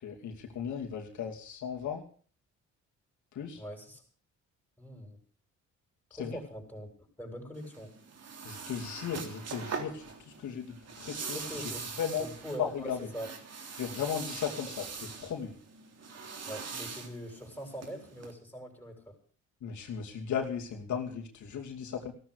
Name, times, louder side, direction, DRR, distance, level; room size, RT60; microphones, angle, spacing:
voice 1, 0.0-2.0 3.3-3.6 6.2-6.4 8.4-11.7 12.0-12.3 12.6-13.0 13.7-15.5 19.6-22.1, left 8 dB, 75° left, 1 dB, 2.8 m, -36 dB
voice 2, 3.5-4.0 4.8-5.2 6.1-6.9 7.2-7.9 11.3-11.8 12.2-13.3 16.5-19.2, equal, 5° left, 1 dB, 7.0 m, -42 dB
sound 1, 7.5-18.3, right 5 dB, 55° right, 3.6 m, -42 dB
16.0 x 13.0 x 6.5 m, 0.43 s
cardioid pair, 90°, 30 cm